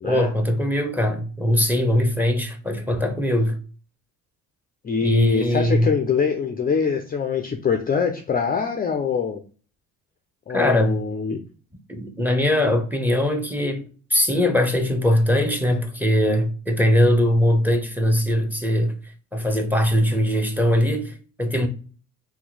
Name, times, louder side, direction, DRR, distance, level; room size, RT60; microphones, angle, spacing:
voice 1, 0.0-3.6 5.0-5.9 10.5-10.9 11.9-13.8 14.1-18.9 19.3-21.7, equal, 5° right, 0.7 m, -21 dB
voice 2, 4.8-9.4 10.5-11.4, left 6 dB, 25° left, 0.4 m, -24 dB
2.8 x 2.2 x 4.0 m
supercardioid pair, 70°, 40 cm